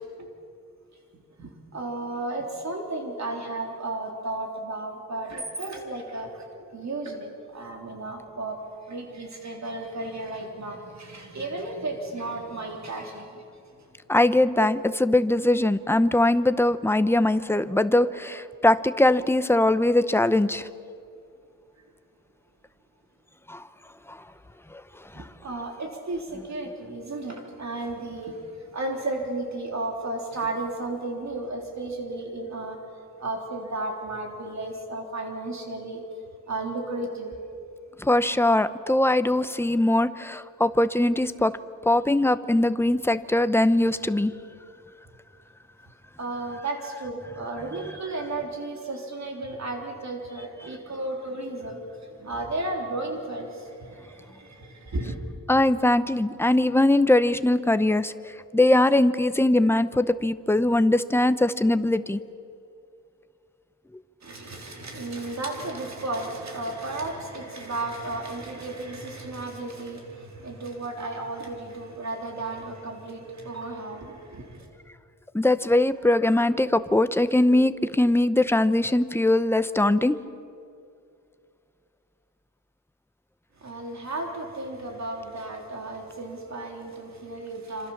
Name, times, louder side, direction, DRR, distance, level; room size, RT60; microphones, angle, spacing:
voice 1, 1.1-6.5 6.7-13.9 14.6-14.7 25.1-32.8 33.2-36.0 36.5-37.4 38.8-38.9 46.2-55.2 64.2-74.7 83.6-87.9, right 2 dB, 50° right, 2 dB, 3.6 m, -34 dB
voice 2, 14.1-20.7 23.5-23.6 24.1-24.2 25.1-25.2 38.0-41.6 41.9-44.3 55.5-58.1 58.5-62.2 75.3-80.2, left 1 dB, 5° left, 12 dB, 0.7 m, -21 dB
27.0 x 26.5 x 7.2 m, 2.4 s
wide cardioid pair, 150°, 35 cm